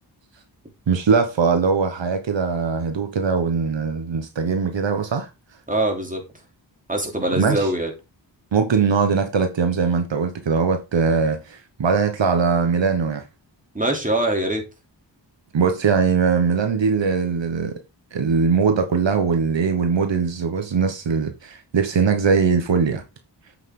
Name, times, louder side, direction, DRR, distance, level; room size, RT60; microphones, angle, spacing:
voice 1, 0.9-5.3 7.4-7.7 8.5-13.2 15.5-17.8 18.1-23.0, right 5 dB, 75° right, 1.2 m, -21 dB
voice 2, 5.7-6.2 6.9-7.9 13.7-14.6, right 1 dB, 20° right, 3.1 m, -23 dB
8.4 x 5.8 x 3.8 m
cardioid pair, 60°, 45 cm